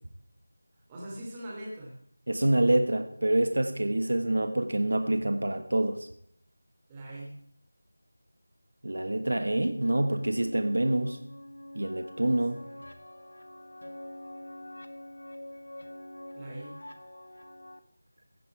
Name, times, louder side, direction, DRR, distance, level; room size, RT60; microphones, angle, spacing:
voice 1, 0.9-2.0 6.9-7.3 12.1-12.3 12.7-12.8 16.3-16.7, right 1 dB, 15° right, -4 dB, 3.0 m, -41 dB
voice 2, 2.3-6.1 8.8-11.2 11.7-12.6, right 1 dB, 70° right, 8 dB, 1.4 m, -26 dB
sound 1, 9.8-17.8, left 1 dB, 80° left, 1.5 m, -45 dB
16.0 x 8.5 x 4.9 m, 0.68 s
figure-of-eight pair, 170°, 0 cm